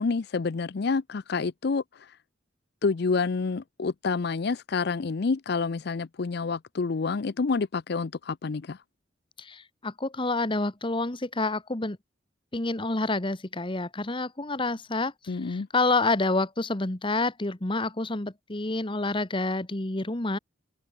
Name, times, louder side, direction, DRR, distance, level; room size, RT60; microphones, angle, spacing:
voice 1, 0.0-2.2 2.8-8.8 15.3-15.7, left 4 dB, 60° left, 0.5 m, -28 dB
voice 2, 9.4-12.0 12.5-20.4, left 2 dB, 30° left, 1.4 m, -28 dB
head